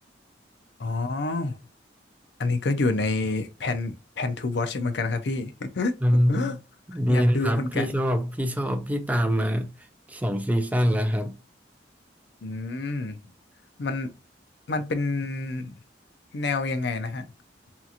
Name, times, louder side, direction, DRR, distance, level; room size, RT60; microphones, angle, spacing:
voice 1, 0.8-1.6 2.4-6.6 6.9-7.9 12.4-13.2 13.8-14.1 14.7-15.7 16.3-17.3, left 3 dB, 65° left, 0.5 m, -28 dB
voice 2, 6.0-6.6 6.9-9.7 10.1-11.4, equal, 10° right, 0.4 m, -24 dB
2.8 x 2.4 x 2.4 m
head